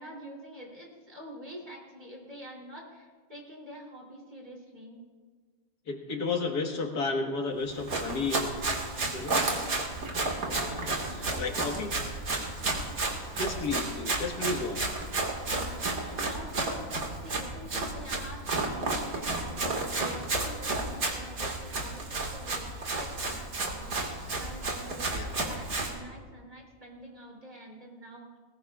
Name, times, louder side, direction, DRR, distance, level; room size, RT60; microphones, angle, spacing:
voice 1, 0.0-5.0 8.5-9.8 10.2-11.6 12.9-13.2 15.5-22.7 23.0-28.4, equal, 30° right, -2 dB, 3.3 m, -47 dB
voice 2, 5.9-8.5 9.1-9.4 10.4-11.9 13.4-14.8 25.1-25.5, left 3 dB, 90° left, 2 dB, 2.1 m, -33 dB
Run, 7.7-25.9, right 2 dB, 65° right, 2.4 m, -32 dB
20.5 x 19.5 x 2.4 m, 1.5 s
omnidirectional pair, 1.6 m